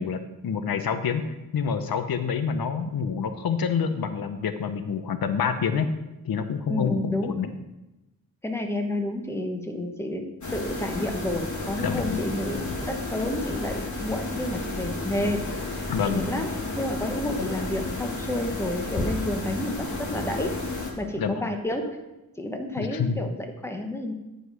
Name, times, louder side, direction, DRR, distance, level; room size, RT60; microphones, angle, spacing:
voice 1, 0.0-5.9 6.2-7.0 7.2-7.5 11.8-12.2 15.9-16.3 17.4-17.5 21.2-21.5 22.8-23.2, left 6 dB, 85° left, 9 dB, 0.8 m, -27 dB
voice 2, 6.7-7.4 8.4-16.5 16.8-20.6 21.0-22.0 22.4-24.1, left 1 dB, 5° left, 4 dB, 1.1 m, -30 dB
sound 1, 10.4-20.9, left 2 dB, 55° left, 1.8 m, -32 dB
9.7 x 5.3 x 6.2 m, 1.0 s
wide cardioid pair, 120°, 35 cm